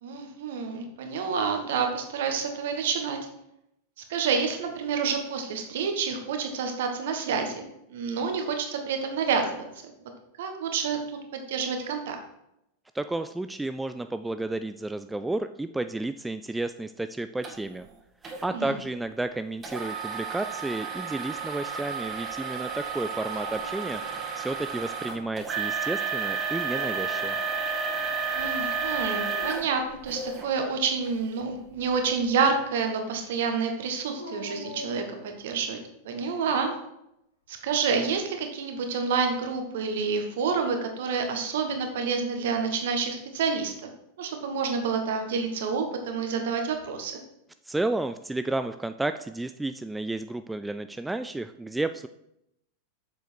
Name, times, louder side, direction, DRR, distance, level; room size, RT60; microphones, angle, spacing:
voice 1, 0.0-3.2 4.1-9.6 10.4-12.2 18.5-18.7 28.3-35.8 36.0-36.8 37.5-43.7 44.2-47.2, right 5 dB, 55° right, 5 dB, 1.5 m, -28 dB
voice 2, 12.9-17.9 18.4-27.4 47.7-52.1, right 2 dB, 5° right, 10 dB, 0.3 m, -32 dB
sound 1, 17.4-17.5 18.2-18.5 19.6-30.5 31.1-31.2 31.8-31.9, right 5 dB, 25° right, 1.8 m, -31 dB
Dog, 23.3-24.4 24.8-25.5 26.5-27.3 29.2-29.9 34.1-35.5, left 2 dB, 75° left, 1.7 m, -43 dB
7.6 x 6.9 x 4.6 m, 0.82 s
figure-of-eight pair, 90°, 0 cm